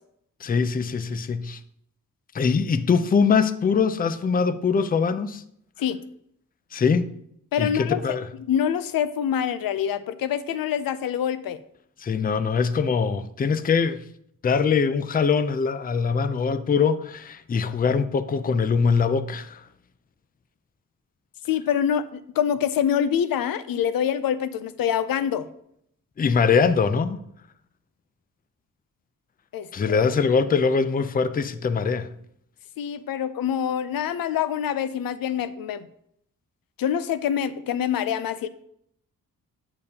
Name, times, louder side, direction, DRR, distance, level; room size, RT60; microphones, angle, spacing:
voice 1, 0.4-1.6 2.3-5.4 6.7-7.1 7.6-8.3 12.0-14.0 14.4-19.6 26.2-27.2 29.7-32.1, left 5 dB, 25° left, 0.4 m, -22 dB
voice 2, 7.5-8.2 8.5-11.6 21.5-25.5 29.5-30.0 32.8-35.9 36.8-38.5, left 9 dB, 90° left, 0.5 m, -25 dB
8.5 x 6.9 x 2.8 m
wide cardioid pair, 110°, 34 cm